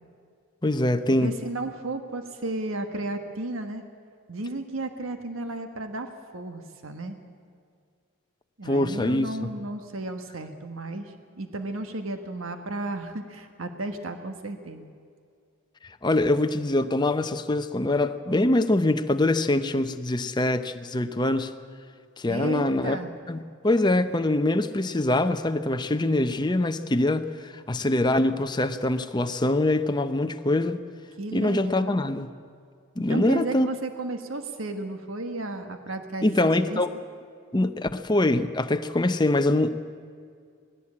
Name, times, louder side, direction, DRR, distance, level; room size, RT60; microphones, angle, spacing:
voice 1, 0.6-1.4 8.6-9.5 16.0-21.5 22.2-23.0 23.3-30.8 31.3-32.3 33.0-33.7 36.2-36.9 37.5-39.7, left 2 dB, 20° left, 9 dB, 0.7 m, -24 dB
voice 2, 1.2-3.8 4.3-7.2 8.6-14.9 22.3-23.1 31.2-32.0 33.1-36.3 36.7-36.8, right 2 dB, 80° right, 7 dB, 1.4 m, -33 dB
19.0 x 16.0 x 8.5 m, 2.3 s
head